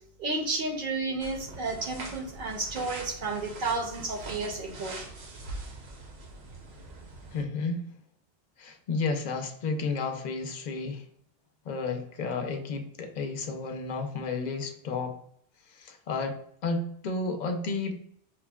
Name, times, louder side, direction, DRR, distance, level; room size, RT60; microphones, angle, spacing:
voice 1, 0.2-5.0, right 3 dB, 55° right, 3 dB, 0.7 m, -32 dB
sound 1, 1.2-7.4, right 2 dB, 70° right, 1.0 m, -43 dB
voice 2, 7.3-7.9 8.6-11.0 11.7-15.1 15.8-16.4 16.6-18.0, left 3 dB, 55° left, 5 dB, 0.5 m, -32 dB
5.7 x 2.1 x 2.2 m, 0.69 s
omnidirectional pair, 1.1 m